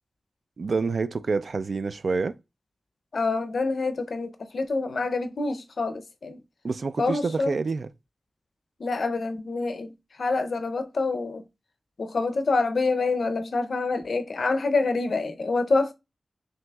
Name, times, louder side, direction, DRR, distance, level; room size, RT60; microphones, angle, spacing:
voice 1, 0.6-2.4 6.6-7.9, right 4 dB, 70° right, 0.3 m, -27 dB
voice 2, 3.1-6.4 7.0-7.6 8.8-11.4 12.0-15.9, left 3 dB, 75° left, 0.5 m, -26 dB
5.9 x 2.7 x 2.2 m
wide cardioid pair, 100°, 0 cm